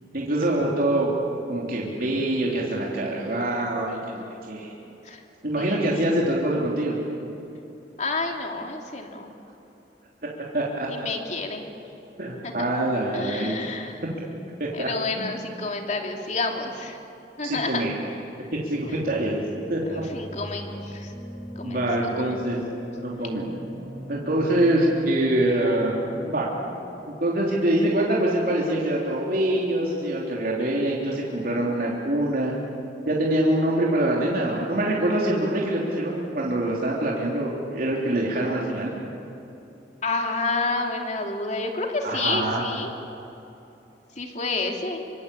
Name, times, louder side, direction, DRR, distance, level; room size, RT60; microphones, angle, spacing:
voice 1, 0.1-1.1 1.5-4.7 5.4-7.0 10.5-10.9 12.2-13.6 14.6-14.9 15.2-15.3 17.4-17.9 18.6-19.4 19.7-20.0 21.6-22.6 23.0-23.5 24.1-26.0 26.3-26.5 27.1-32.5 33.0-39.1 42.0-42.6, right 1 dB, 55° right, -3 dB, 3.4 m, -24 dB
voice 2, 5.6-6.1 8.0-9.3 10.9-11.7 12.4-12.5 13.1-14.0 14.7-17.0 17.4-17.9 18.9-19.0 19.9-21.1 21.6-22.4 40.0-42.9 44.2-45.0, left 3 dB, 45° left, 2 dB, 3.0 m, -30 dB
sound 1, 18.9-26.9, equal, 25° left, 3.8 m, -39 dB
27.0 x 24.5 x 8.4 m, 2.9 s
head